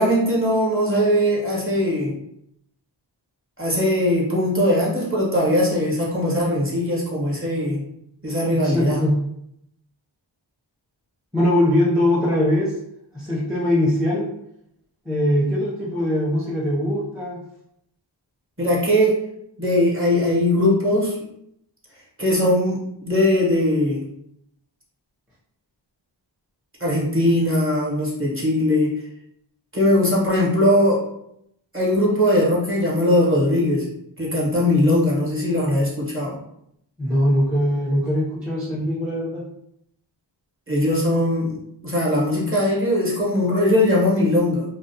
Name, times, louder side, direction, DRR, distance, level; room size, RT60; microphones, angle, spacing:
voice 1, 0.0-2.1 3.6-7.8 8.2-9.0 18.6-19.2 19.6-21.2 22.2-24.0 26.8-28.9 29.7-31.0 31.7-33.9 34.2-36.4 40.7-41.5 41.8-44.6, left 1 dB, 25° right, -6 dB, 1.0 m, -20 dB
voice 2, 8.5-9.2 11.3-12.7 13.1-14.3 15.0-17.4 37.0-39.4, left 1 dB, ahead, -7 dB, 0.6 m, -21 dB
2.3 x 2.2 x 2.7 m, 0.75 s
wide cardioid pair, 50°, 48 cm